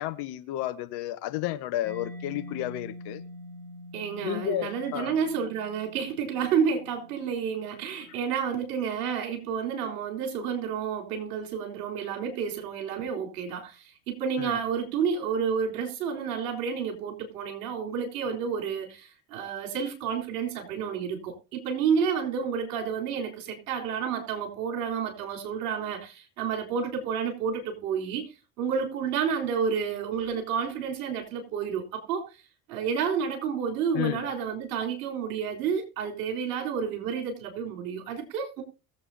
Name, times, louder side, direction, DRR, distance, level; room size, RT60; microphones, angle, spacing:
voice 1, 0.0-3.2 4.2-5.1 14.4-14.6 33.9-34.2, left 14 dB, 55° left, 1.4 m, -32 dB
Mallet percussion, 1.8-9.3, left 1 dB, 5° left, 3.7 m, -46 dB
voice 2, 3.9-32.3 32.7-38.6, right 6 dB, 65° right, 3.9 m, -30 dB
22.0 x 7.9 x 2.8 m
figure-of-eight pair, 65°, 48 cm